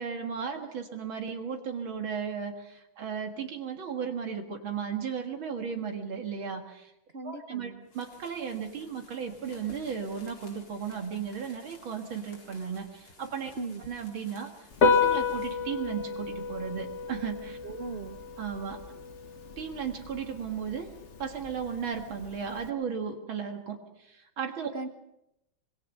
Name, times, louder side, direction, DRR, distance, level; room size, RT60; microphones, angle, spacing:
voice 1, 0.0-6.9 7.2-13.5 13.9-17.6 18.4-18.8 19.6-20.9 21.2-24.7, right 7 dB, 75° right, 3 dB, 2.6 m, -35 dB
voice 2, 7.1-7.8 13.5-13.8 17.6-18.2 24.7-24.9, right 3 dB, 40° right, 7 dB, 1.0 m, -38 dB
sound 1, 7.8-15.5, left 2 dB, 90° left, 5.3 m, -55 dB
Piano, 14.7-22.7, left 5 dB, 40° left, 1.5 m, -31 dB
25.5 x 23.0 x 5.5 m, 0.85 s
omnidirectional pair, 2.3 m